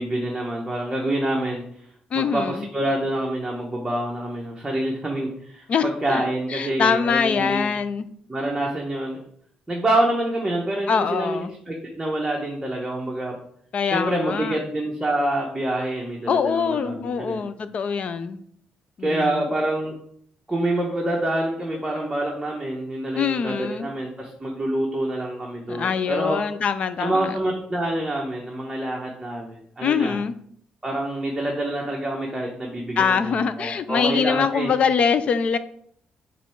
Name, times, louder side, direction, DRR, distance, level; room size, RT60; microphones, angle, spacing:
voice 1, 0.0-1.6 2.1-7.7 8.3-9.2 9.7-13.4 13.9-17.4 19.0-19.9 20.5-26.4 27.0-30.2 30.8-34.7, right 1 dB, 10° right, -2 dB, 0.9 m, -26 dB
voice 2, 2.1-2.7 5.7-8.1 10.9-11.5 13.7-14.6 16.3-18.4 19.0-19.5 23.2-23.9 25.7-27.3 29.8-30.3 33.0-35.6, left 6 dB, 45° left, 12 dB, 0.5 m, -24 dB
8.1 x 3.1 x 4.5 m, 0.64 s
cardioid pair, 155°, 3 cm